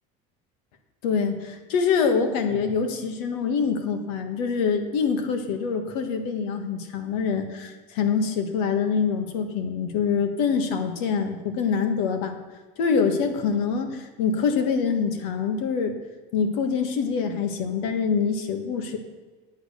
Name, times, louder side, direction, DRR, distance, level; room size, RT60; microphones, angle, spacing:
voice 1, 1.0-12.4 12.8-15.9 16.3-19.0, left 6 dB, 85° left, 6 dB, 1.5 m, -25 dB
9.2 x 8.4 x 6.6 m, 1.3 s
cardioid pair, 155°, 18 cm